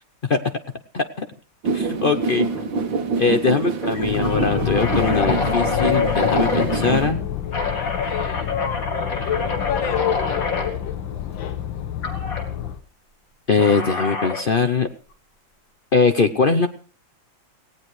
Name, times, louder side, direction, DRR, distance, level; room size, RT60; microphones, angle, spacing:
voice 1, 0.9-1.3 1.7-2.5 3.2-7.2 13.5-14.9 15.9-16.7, left 4 dB, 60° left, 8 dB, 0.5 m, -21 dB
sound 1, 1.6-7.1, right 4 dB, 85° right, 2.3 m, -26 dB
sound 2, 2.6-2.8 3.1-3.2 3.8-7.1 7.5-10.7 12.0-12.4 13.6-14.5, left 3 dB, 45° left, 2.8 m, -27 dB
Boat Water vehicle, 4.0-12.8, left 9 dB, 85° left, 1.9 m, -26 dB
18.0 x 17.0 x 3.1 m, 0.41 s
omnidirectional pair, 2.1 m